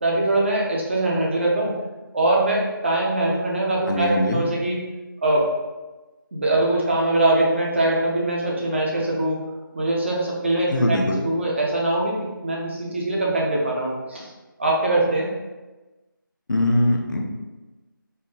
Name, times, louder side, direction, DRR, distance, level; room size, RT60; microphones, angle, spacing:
voice 1, 0.0-1.8 2.1-4.8 5.2-5.5 6.3-9.4 9.7-11.0 11.2-14.3 14.6-15.3, right 2 dB, 35° right, -3 dB, 0.6 m, -22 dB
voice 2, 3.9-4.4 10.7-11.2 16.5-17.2, left 1 dB, 60° left, 1 dB, 0.6 m, -21 dB
4.2 x 2.1 x 3.8 m, 1.1 s
figure-of-eight pair, 170°, 12 cm